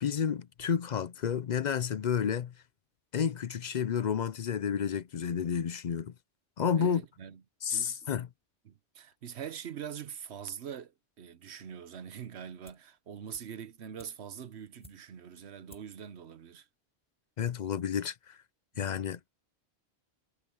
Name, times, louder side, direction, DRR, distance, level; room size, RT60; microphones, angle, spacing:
voice 1, 0.0-2.5 3.1-6.1 6.6-7.0 7.6-8.3 17.4-18.4 18.8-19.3, left 7 dB, 50° left, 0.6 m, -31 dB
voice 2, 6.7-7.4 7.7-8.1 8.6-16.7 18.7-19.2, right 8 dB, 75° right, 1.1 m, -44 dB
sound 1, 12.6-13.0 13.3-15.3 15.7-16.0 16.3-16.4, equal, 5° left, 1.5 m, -58 dB
omnidirectional pair, 1.1 m